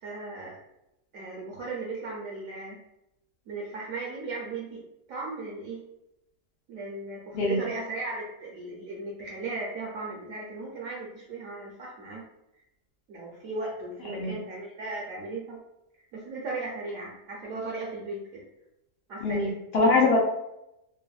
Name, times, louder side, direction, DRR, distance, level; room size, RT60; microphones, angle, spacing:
voice 1, 0.0-0.6 1.1-2.8 3.5-4.8 5.1-5.8 6.7-12.2 13.1-15.6 16.1-18.4 19.1-19.5, right 3 dB, 70° right, -3 dB, 0.9 m, -36 dB
voice 2, 19.2-20.2, left 3 dB, 85° left, -3 dB, 0.5 m, -23 dB
3.2 x 2.0 x 2.3 m, 0.85 s
omnidirectional pair, 1.7 m